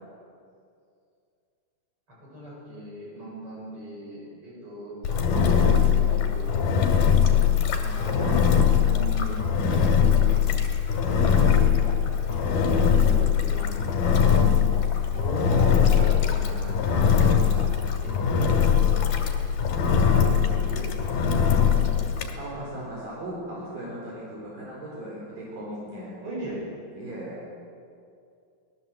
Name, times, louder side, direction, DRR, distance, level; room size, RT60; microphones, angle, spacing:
voice 1, 2.1-6.7 7.8-10.5 11.1-14.5 15.5-18.4 18.7-19.4 19.9-21.0 26.2-26.6, right 1 dB, 35° right, -3 dB, 7.8 m, -39 dB
Engine, 5.0-22.3, left 7 dB, 70° left, 3.8 m, -21 dB
voice 2, 7.1-7.4 8.0-8.5 15.1-16.1 22.4-26.2 26.9-27.5, right 1 dB, 60° right, -5 dB, 6.0 m, -36 dB
24.0 x 19.5 x 7.7 m, 2.4 s
omnidirectional pair, 4.6 m